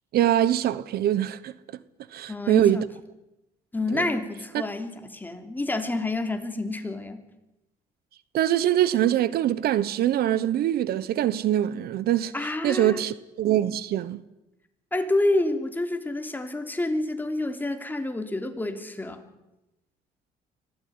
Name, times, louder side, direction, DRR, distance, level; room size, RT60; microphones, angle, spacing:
voice 1, 0.1-1.5 2.1-2.9 3.9-4.1 4.5-4.6 8.3-12.3 12.6-14.2, right 12 dB, 65° right, 1.1 m, -23 dB
voice 2, 2.3-2.9 3.7-7.2 12.3-13.0 14.9-19.2, left 2 dB, 10° left, 3.3 m, -28 dB
25.0 x 17.5 x 9.6 m
cardioid pair, 110°, 17 cm